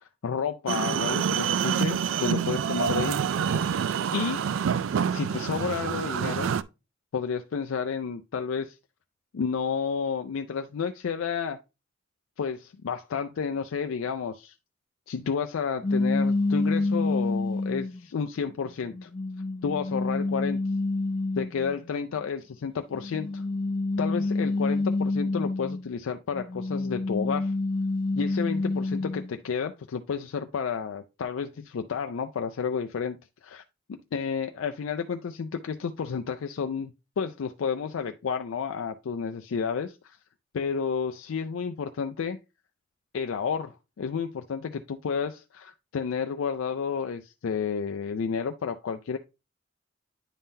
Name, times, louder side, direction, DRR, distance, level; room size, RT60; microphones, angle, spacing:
voice 1, 0.0-3.2 4.1-4.4 5.1-6.5 7.1-8.8 9.3-11.6 12.4-14.5 15.1-19.1 19.6-20.6 21.4-23.4 24.0-27.5 28.1-33.6 33.9-40.2 40.5-42.4 43.1-49.2, left 6 dB, 90° left, 0.4 m, -31 dB
sound 1, 0.7-6.6, right 7 dB, 75° right, 0.3 m, -27 dB
sound 2, 15.8-18.0 18.7-21.8 22.9-25.9 26.3-29.3, left 2 dB, 25° left, 0.5 m, -28 dB
9.9 x 3.7 x 2.7 m
head